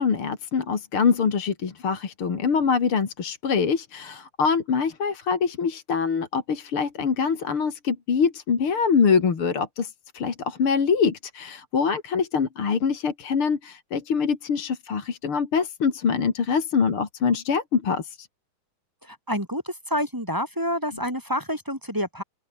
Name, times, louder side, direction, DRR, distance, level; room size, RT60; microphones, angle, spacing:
voice 1, 0.0-18.3, left 6 dB, 45° left, 3.2 m, -24 dB
voice 2, 19.1-22.2, equal, 5° right, 4.1 m, -28 dB
open air
omnidirectional pair, 3.6 m